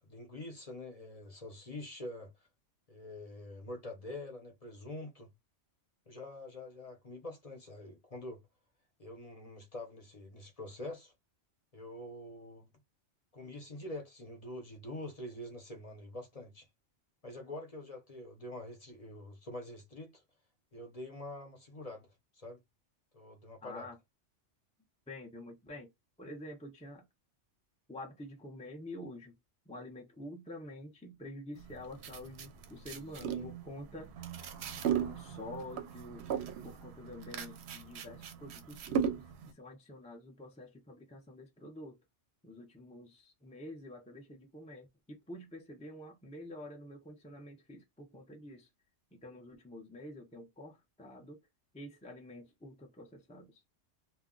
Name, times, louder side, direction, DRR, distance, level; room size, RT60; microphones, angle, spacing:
voice 1, 0.0-2.3 2.9-5.3 6.1-8.4 9.0-11.1 11.7-12.7 13.3-16.7 17.2-20.2 20.7-22.6 23.1-23.9 33.2-33.5, left 1 dB, 35° left, 0.7 m, -45 dB
voice 2, 23.6-24.0 25.1-25.9 26.2-27.0 27.9-29.3 29.7-34.5 35.0-36.3 36.6-42.0 42.4-48.7 49.1-51.4 51.7-53.6, left 1 dB, 10° left, 0.3 m, -48 dB
sound 1, 31.6-39.5, right 8 dB, 70° right, 0.8 m, -37 dB
2.4 x 2.2 x 3.6 m
omnidirectional pair, 1.2 m